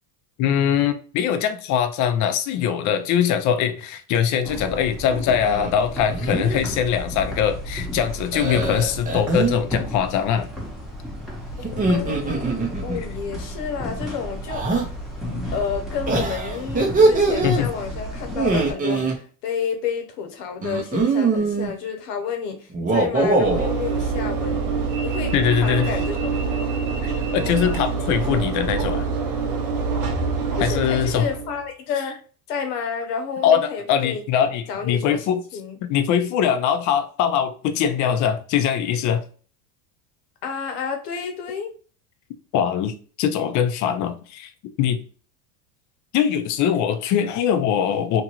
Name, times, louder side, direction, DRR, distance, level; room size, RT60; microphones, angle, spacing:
voice 1, 0.4-10.5 17.4-17.7 25.3-25.9 27.0-29.1 30.6-31.3 33.4-35.4 35.8-39.2 42.5-44.5 44.8-45.0 46.1-48.2, left 8 dB, 40° left, 0.5 m, -22 dB
footsteps echo hall, 4.4-18.7, equal, ahead, 0.9 m, -33 dB
sound 1, 5.4-5.7 6.1-6.6 8.3-9.6 11.6-13.0 14.5-14.9 16.1-17.6 18.3-19.2 20.6-21.7 22.7-23.7, right 3 dB, 20° right, 0.6 m, -22 dB
voice 2, 11.6-12.4 12.8-14.6 15.5-24.7 25.0-25.3 25.6-26.3 30.6-32.2 32.5-34.2 34.7-35.2 35.5-35.8 40.4-41.7, left 6 dB, 85° left, 0.9 m, -30 dB
Train / Engine / Alarm, 23.4-31.6, right 5 dB, 75° right, 1.1 m, -25 dB
3.0 x 2.5 x 2.9 m
supercardioid pair, 115°, 47 cm